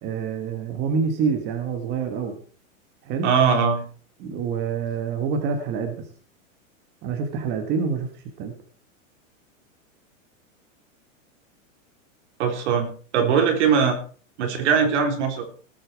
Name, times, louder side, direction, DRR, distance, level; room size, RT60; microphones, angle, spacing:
voice 1, 0.0-2.3 3.0-3.3 4.2-6.1 7.0-8.1 8.4-8.5 13.2-13.3, right 5 dB, 25° right, 5 dB, 1.5 m, -26 dB
voice 2, 3.2-3.8 12.4-12.9 13.1-14.0 14.4-15.6, right 6 dB, 60° right, 4 dB, 4.1 m, -20 dB
19.0 x 8.5 x 4.7 m, 0.42 s
supercardioid pair, 165°, 40 cm